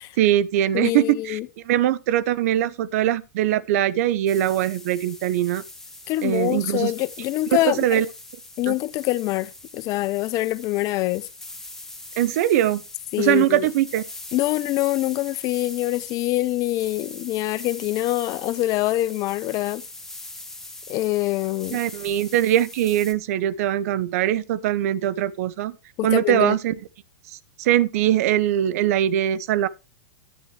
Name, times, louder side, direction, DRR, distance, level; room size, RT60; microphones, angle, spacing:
voice 1, 0.2-1.4 1.6-5.6 6.2-6.9 7.6-8.1 8.7-8.8 12.2-12.8 13.2-14.0 21.7-25.7 26.0-26.8 27.3-29.7, right 12 dB, 60° right, 0.9 m, -22 dB
voice 2, 0.7-1.5 6.1-8.0 8.6-11.3 13.1-13.7 14.3-19.8 20.9-21.8 26.0-26.6, left 17 dB, 40° left, 0.7 m, -25 dB
sound 1, 4.3-23.1, left 2 dB, 5° left, 1.5 m, -42 dB
11.0 x 9.3 x 3.3 m
hypercardioid pair, 110°, 9 cm